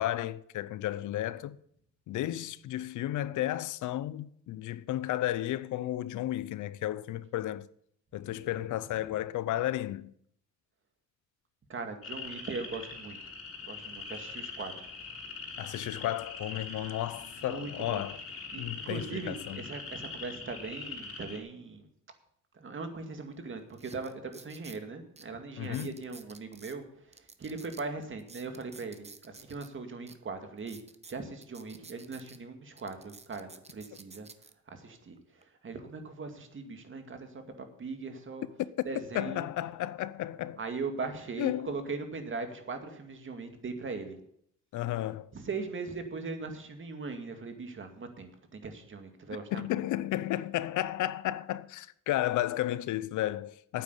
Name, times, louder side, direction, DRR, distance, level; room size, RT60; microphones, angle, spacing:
voice 1, 0.0-1.6 2.1-7.7 8.1-10.1 15.6-18.2 18.6-19.7 25.6-26.0 39.1-40.6 41.4-41.7 44.7-45.3 49.5-53.8, left 14 dB, 80° left, 0.7 m, -33 dB
voice 2, 11.7-13.2 13.6-14.9 17.4-18.0 18.5-21.9 22.6-26.8 27.4-30.8 31.1-34.3 34.7-35.2 35.6-38.5 38.9-39.5 40.6-44.2 45.3-49.7, right 4 dB, 40° right, 2.2 m, -39 dB
sound 1, 12.0-21.4, left 4 dB, 45° left, 3.4 m, -43 dB
sound 2, 23.1-23.2 23.7-24.8 25.2-25.3 25.6-26.8 27.1-29.7 30.1-30.2 30.6-32.4 32.8-34.5 35.2-35.4, right 4 dB, 20° right, 0.9 m, -52 dB
9.1 x 8.8 x 8.2 m
cardioid pair, 90°, 30 cm